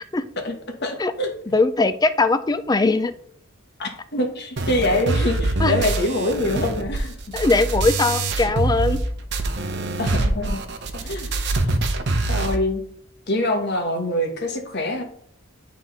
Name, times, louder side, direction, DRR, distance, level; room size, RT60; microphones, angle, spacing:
voice 1, 0.8-1.3 3.8-7.1 10.0-10.6 10.9-11.3 11.6-11.8 12.3-12.8 13.3-15.0, left 1 dB, 55° left, 4 dB, 1.3 m, -24 dB
voice 2, 1.5-3.1 5.6-5.7 7.3-9.0, left 3 dB, 20° left, 13 dB, 0.4 m, -20 dB
sound 1, 4.6-9.0 9.3-12.6, right 2 dB, 55° right, 0.8 m, -24 dB
10.5 x 3.6 x 4.0 m, 0.66 s
head